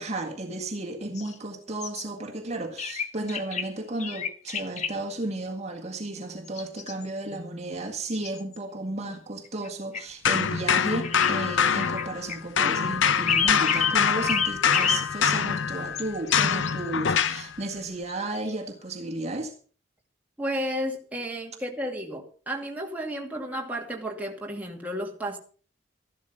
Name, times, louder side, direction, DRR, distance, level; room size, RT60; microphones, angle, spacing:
voice 1, 0.0-19.5, right 2 dB, 35° right, 3 dB, 1.8 m, -33 dB
sound 1, 1.2-1.3 1.8-2.0 2.8-3.7 4.0-4.9 6.5-7.3 7.9-8.6 9.5-9.7 9.9-10.0 11.0-11.3 11.8-12.4 13.3-14.0 14.3-15.1 16.0-16.7 18.1-18.5, left 6 dB, 35° left, 1.2 m, -29 dB
sound 2, 10.2-12.3 12.6-17.5, left 7 dB, 70° left, 0.7 m, -24 dB
voice 2, 20.4-25.4, equal, 10° right, 0 dB, 2.4 m, -32 dB
14.0 x 12.0 x 5.5 m, 0.41 s
head